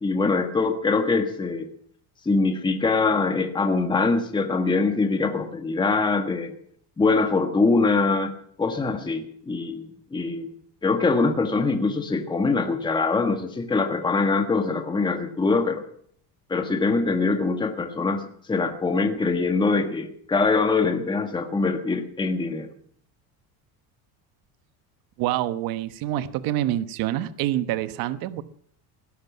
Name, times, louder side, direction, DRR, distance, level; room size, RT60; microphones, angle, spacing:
voice 1, 0.0-1.7 2.2-6.5 7.0-8.3 8.6-10.5 10.8-15.8 16.5-22.7, left 3 dB, 10° left, 6 dB, 1.4 m, -23 dB
voice 2, 25.2-28.4, right 13 dB, 60° right, 13 dB, 1.1 m, -26 dB
18.0 x 11.0 x 7.3 m, 0.64 s
cardioid pair, 150°, 39 cm